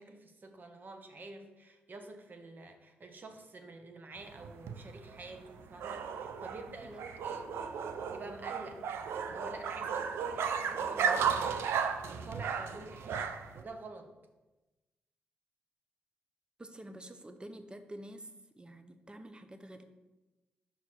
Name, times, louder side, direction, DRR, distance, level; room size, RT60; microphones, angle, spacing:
voice 1, 0.0-7.7 8.1-8.8 9.2-11.7 12.0-14.1, right 2 dB, 50° right, 5 dB, 0.9 m, -48 dB
sound 1, 4.2-13.6, right 7 dB, 80° right, 0.4 m, -35 dB
voice 2, 16.6-18.3 18.6-19.8, right 1 dB, 20° right, 8 dB, 0.7 m, -48 dB
5.6 x 4.7 x 4.3 m, 1.1 s
supercardioid pair, 55°, 4 cm